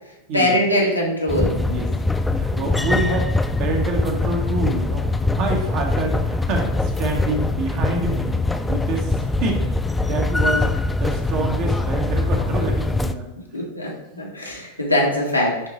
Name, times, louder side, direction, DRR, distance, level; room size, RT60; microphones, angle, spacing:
voice 1, 0.3-1.6 13.5-15.7, left 1 dB, 85° left, -3 dB, 1.8 m, -22 dB
sound 1, 1.3-13.1, left 2 dB, 10° left, 0.4 m, -22 dB
voice 2, 1.6-3.3 3.6-5.0 5.3-8.3 8.6-9.7 10.1-10.7 11.0-13.2, right 2 dB, 40° right, 1 dB, 1.5 m, -27 dB
10.5 x 4.0 x 3.1 m, 0.91 s
figure-of-eight pair, 90°, 0 cm